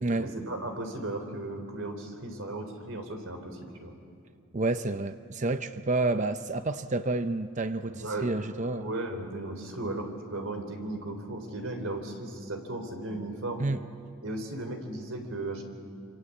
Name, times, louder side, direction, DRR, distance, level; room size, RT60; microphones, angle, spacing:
voice 1, 0.2-3.9 7.9-8.3 8.8-13.6 14.2-15.6, right 2 dB, 70° right, 5 dB, 3.8 m, -36 dB
voice 2, 4.5-8.9 13.6-13.8, right 2 dB, 35° right, 10 dB, 0.6 m, -29 dB
26.5 x 25.0 x 8.4 m, 2.5 s
head